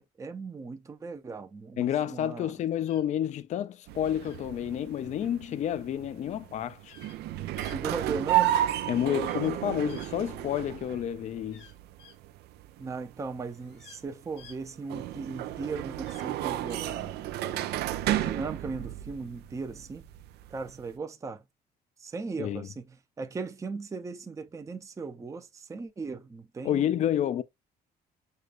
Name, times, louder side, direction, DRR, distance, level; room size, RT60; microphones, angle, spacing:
voice 1, 0.0-2.5 7.6-8.6 12.8-17.8 18.1-20.0 20.5-21.4 22.0-22.9 23.2-26.9, right 4 dB, 20° right, 0.5 m, -38 dB
voice 2, 1.8-6.9 8.9-11.7 22.4-22.7 26.6-27.4, left 10 dB, 45° left, 0.4 m, -30 dB
sound 1, 2.9-3.0 4.2-4.4 6.8-7.2 7.6-7.8 9.2-9.5 9.9-10.8 11.5-12.2 13.5-14.0 14.4-14.6 16.0-16.3 16.7-16.9, left 7 dB, 90° left, 2.1 m, -53 dB
sound 2, 3.9-20.9, right 13 dB, 75° right, 0.4 m, -33 dB
6.6 x 2.3 x 2.4 m
cardioid pair, 110°, 17 cm